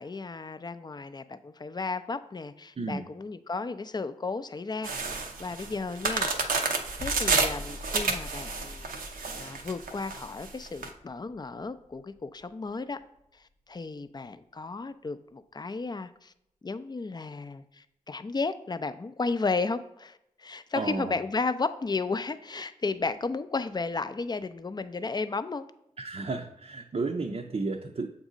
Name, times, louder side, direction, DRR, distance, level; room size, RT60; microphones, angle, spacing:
voice 1, 0.0-6.3 7.0-8.9 9.3-13.0 13.7-16.3 16.6-25.6, left 4 dB, 30° left, 12 dB, 0.4 m, -33 dB
sound 1, 4.8-10.9, right 4 dB, 90° right, 0.6 m, -30 dB
sound 2, 7.0-12.7 13.0-13.2, left 1 dB, 90° left, 1.0 m, -45 dB
voice 2, 20.7-21.2 26.0-28.1, right 3 dB, 45° right, 2 dB, 0.5 m, -32 dB
7.1 x 2.7 x 4.9 m, 0.81 s
cardioid pair, 45°, 14 cm